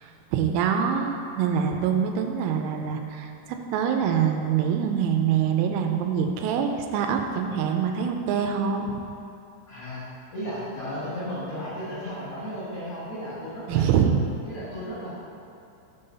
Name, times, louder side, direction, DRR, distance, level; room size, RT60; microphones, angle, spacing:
voice 1, 0.0-8.9 13.7-14.3, right 7 dB, 85° right, 4 dB, 3.1 m, -25 dB
voice 2, 9.7-10.0 10.3-13.9 14.5-15.1, equal, 70° left, -10 dB, 1.5 m, -34 dB
7.2 x 5.5 x 5.5 m, 2.8 s
omnidirectional pair, 5.7 m